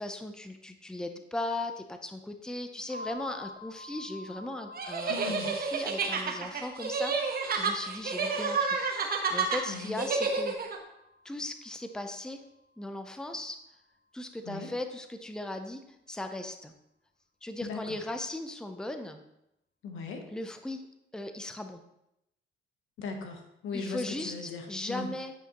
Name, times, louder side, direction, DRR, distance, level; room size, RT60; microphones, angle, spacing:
voice 1, 0.0-10.5 11.2-12.4 12.8-13.6 14.1-15.8 16.1-16.7 17.4-19.2 20.3-20.8 21.1-21.8 23.7-25.3, left 1 dB, 5° left, 7 dB, 0.6 m, -38 dB
sound 1, 2.9-12.5, left 2 dB, 35° left, 1.9 m, -49 dB
sound 2, 4.8-10.8, right 4 dB, 50° right, 1.1 m, -30 dB
voice 2, 5.1-5.5 9.6-10.0 14.5-14.7 17.6-17.8 19.8-20.3 23.0-25.1, left 4 dB, 85° left, 4 dB, 1.1 m, -38 dB
9.3 x 5.0 x 3.0 m, 0.84 s
cardioid pair, 90°, 20 cm